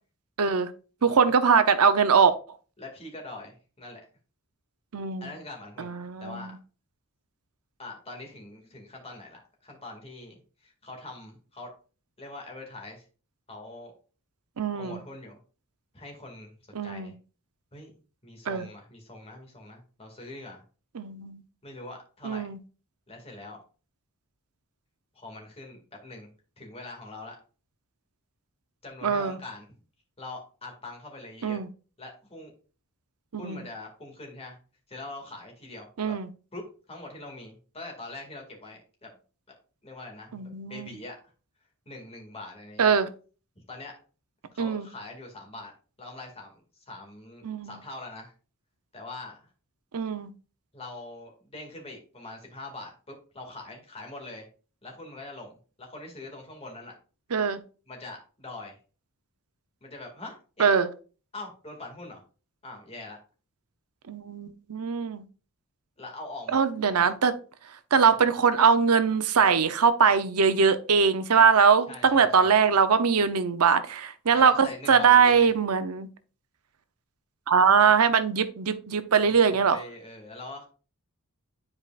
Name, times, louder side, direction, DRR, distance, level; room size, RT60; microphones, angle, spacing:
voice 1, 0.4-0.7 1.0-2.3 4.9-5.3 5.8-6.5 14.6-15.0 16.7-17.1 18.5-18.7 20.9-21.4 22.2-22.6 29.0-29.4 31.4-31.7 33.3-33.6 36.0-36.3 40.3-40.9 42.8-43.1 44.6-44.9 47.4-47.7 49.9-50.3 57.3-57.6 60.6-60.9 64.1-65.2 66.5-67.3 67.9-76.1 77.5-79.8, right 6 dB, 80° right, 0.7 m, -22 dB
voice 2, 2.8-4.0 5.2-5.9 6.2-6.6 7.8-11.7 12.2-13.0 13.5-13.9 14.7-15.4 15.9-16.5 16.8-17.1 17.7-17.9 18.2-20.6 21.6-22.5 23.1-23.6 25.1-26.3 26.6-27.4 28.8-29.8 30.2-31.6 32.0-32.5 33.4-34.6 34.9-36.1 36.5-39.1 39.8-41.2 41.9-42.9 43.6-44.0 44.5-45.7 46.0-48.3 48.9-49.5 50.7-54.5 54.8-56.9 57.9-58.8 59.8-60.7 61.3-62.2 62.6-63.2 66.0-66.6 67.0-67.1 67.9-68.2 71.9-72.5 74.3-75.5 79.5-80.7, left 2 dB, 30° left, 2.0 m, -43 dB
9.7 x 4.9 x 2.4 m
head